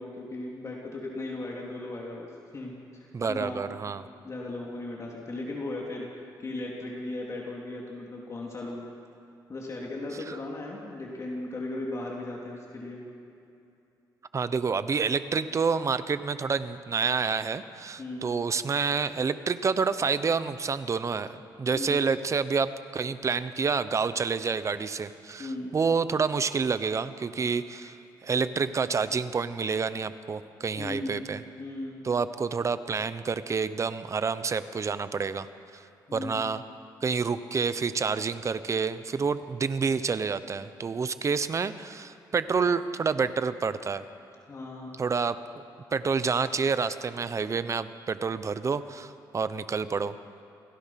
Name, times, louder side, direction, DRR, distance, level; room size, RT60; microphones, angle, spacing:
voice 1, 0.0-3.7 4.2-8.9 9.5-13.0 18.0-18.4 21.7-22.0 25.4-25.7 30.7-32.0 36.1-36.5 44.4-45.0, left 2 dB, 40° left, -2 dB, 3.4 m, -37 dB
voice 2, 3.1-4.0 10.3-10.4 14.3-28.0 28.2-31.4 32.0-35.5 35.7-35.8 36.1-36.6 37.0-44.0 45.0-45.6 45.9-50.1, right 5 dB, 40° right, 12 dB, 1.0 m, -28 dB
28.5 x 18.0 x 6.0 m, 2.7 s
cardioid pair, 95°, 8 cm